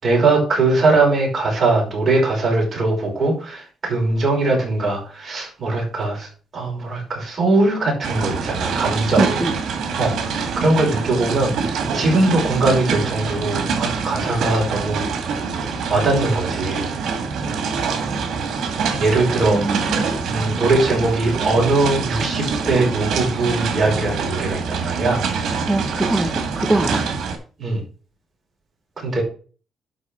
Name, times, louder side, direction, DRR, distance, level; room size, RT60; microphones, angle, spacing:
voice 1, 0.0-6.3 6.5-9.3 9.9-15.1 15.9-16.9 18.9-19.6 20.2-25.3 27.6-27.8 29.0-29.2, right 2 dB, 35° right, -2 dB, 5.4 m, -20 dB
sound 1, 8.0-27.4, right 5 dB, 75° right, 2.2 m, -25 dB
voice 2, 9.2-9.5 19.5-20.1 25.7-26.3 26.6-27.0, right 2 dB, 10° right, 3 dB, 1.1 m, -21 dB
11.5 x 4.2 x 5.8 m, 0.39 s
cardioid pair, 140°, 0 cm